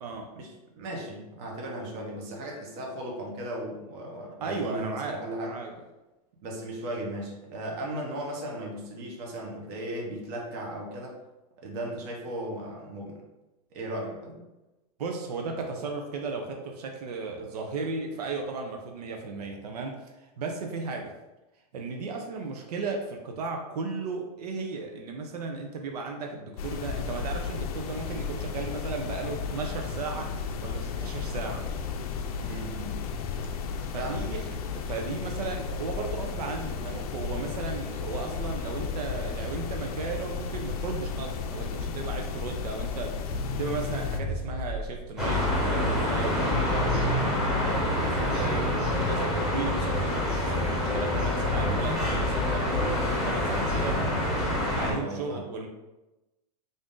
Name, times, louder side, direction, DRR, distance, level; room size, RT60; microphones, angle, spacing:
voice 1, 0.3-5.6 6.4-11.2 11.6-13.2 13.7-14.4 32.4-33.0 34.0-34.3 46.8-47.4 54.7-55.4, right 1 dB, 40° right, -1 dB, 0.9 m, -36 dB
voice 2, 4.4-5.7 15.0-21.1 21.7-31.6 33.9-47.3 47.9-53.0 53.2-54.1 54.7-55.7, right 4 dB, 85° right, 2 dB, 0.6 m, -35 dB
sound 1, 26.6-44.2, left 6 dB, 70° left, 0.5 m, -34 dB
Crackle, 31.6-45.2, left 2 dB, 20° left, 0.5 m, -40 dB
sound 2, 45.2-54.9, left 1 dB, ahead, 0.9 m, -26 dB
3.6 x 2.6 x 3.6 m, 1.0 s
supercardioid pair, 155°, 20 cm